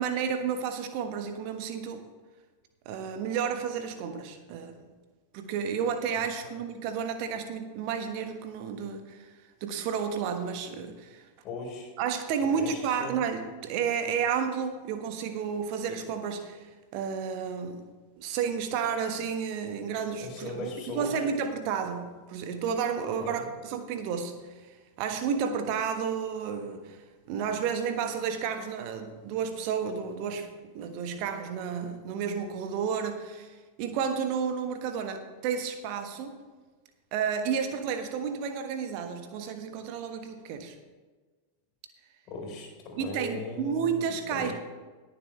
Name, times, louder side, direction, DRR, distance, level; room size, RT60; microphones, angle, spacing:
voice 1, 0.0-2.1 2.8-4.7 5.3-9.3 9.6-11.3 12.0-17.8 18.2-20.7 20.9-30.5 30.7-36.4 37.1-40.7 43.0-44.5, right 7 dB, 45° right, 7 dB, 1.4 m, -31 dB
voice 2, 6.2-6.5 11.4-11.9 12.5-13.2 20.2-21.2 23.2-23.5 42.3-44.5, left 3 dB, 35° left, 1 dB, 4.2 m, -39 dB
20.0 x 7.3 x 3.3 m, 1.3 s
figure-of-eight pair, 90°, 0 cm